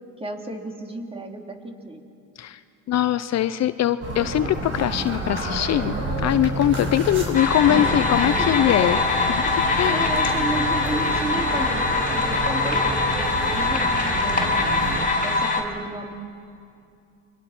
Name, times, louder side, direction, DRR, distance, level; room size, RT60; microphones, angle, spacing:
voice 1, 0.2-2.0 8.4-9.3 9.9-12.9 13.5-14.8 15.2-16.1, right 2 dB, 15° right, 2 dB, 3.6 m, -33 dB
voice 2, 2.9-6.0 6.2-9.0 9.3-9.4 9.8-10.1, left 12 dB, 50° left, 13 dB, 0.8 m, -22 dB
sound 1, 4.0-15.0, right 1 dB, 35° right, 6.7 m, -29 dB
sound 2, 7.3-15.6, left 3 dB, 25° left, 4.8 m, -23 dB
29.5 x 24.5 x 6.1 m, 2.5 s
supercardioid pair, 85°, 35 cm